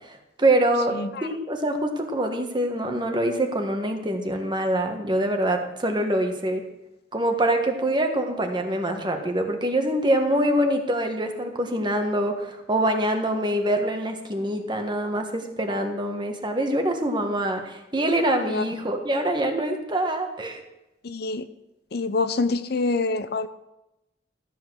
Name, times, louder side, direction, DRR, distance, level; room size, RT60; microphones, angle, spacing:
voice 1, 0.1-6.6 7.1-20.6, right 1 dB, 25° right, 4 dB, 1.5 m, -25 dB
voice 2, 0.9-1.3 18.5-18.6 21.0-21.5 21.9-23.5, left 3 dB, 60° left, 11 dB, 0.7 m, -26 dB
13.5 x 7.8 x 6.2 m, 0.93 s
head